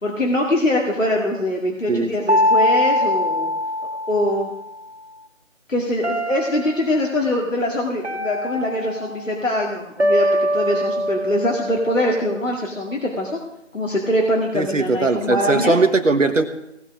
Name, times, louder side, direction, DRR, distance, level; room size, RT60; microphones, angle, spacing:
voice 1, 0.0-3.5 4.1-4.5 5.7-10.3 10.5-13.4 13.7-15.8, left 1 dB, 75° left, -1 dB, 2.2 m, -23 dB
sound 1, 2.3-4.6 6.0-7.0 8.0-9.3 10.0-12.4, left 1 dB, 60° right, 2.3 m, -22 dB
voice 2, 14.5-16.5, right 3 dB, 75° right, 7 dB, 1.3 m, -19 dB
17.5 x 8.9 x 4.9 m, 0.85 s
figure-of-eight pair, 160°, 38 cm